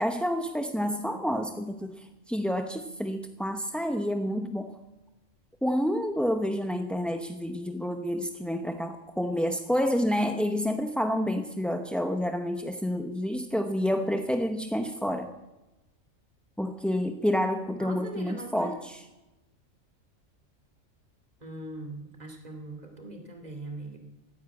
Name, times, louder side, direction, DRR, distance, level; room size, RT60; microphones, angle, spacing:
voice 1, 0.0-4.7 5.6-15.3 16.6-19.1, equal, ahead, 5 dB, 0.4 m, -29 dB
voice 2, 17.7-18.7 21.4-24.0, right 2 dB, 30° right, 4 dB, 2.7 m, -40 dB
14.0 x 9.9 x 8.3 m, 1.0 s
omnidirectional pair, 1.4 m